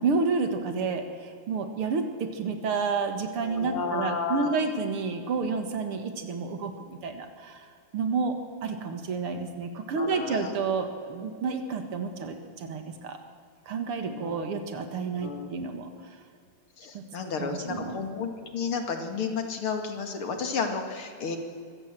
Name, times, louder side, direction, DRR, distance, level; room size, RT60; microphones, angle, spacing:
voice 1, 0.0-7.7 7.9-13.2 13.7-15.9 16.9-17.0 17.4-18.0, right 4 dB, 90° right, 6 dB, 2.6 m, -30 dB
voice 2, 3.4-4.5 10.0-10.5 14.1-14.4 14.7-14.8 15.2-15.6 15.9-16.1 16.8-21.4, left 5 dB, 80° left, 5 dB, 3.0 m, -32 dB
24.5 x 17.0 x 7.6 m, 2.2 s
omnidirectional pair, 2.4 m